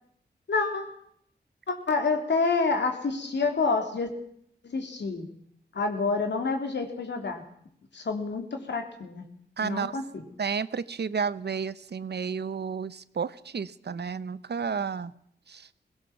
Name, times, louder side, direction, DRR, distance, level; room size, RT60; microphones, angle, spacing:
voice 1, 0.5-0.9 1.7-4.1 4.6-5.2 5.7-7.4 7.9-9.2 9.6-10.2, left 4 dB, 85° left, 4 dB, 3.2 m, -28 dB
voice 2, 9.6-10.0 10.4-15.1 15.5-15.7, right 6 dB, 70° right, 16 dB, 0.9 m, -31 dB
21.0 x 17.5 x 7.1 m, 0.70 s
wide cardioid pair, 75°, 18 cm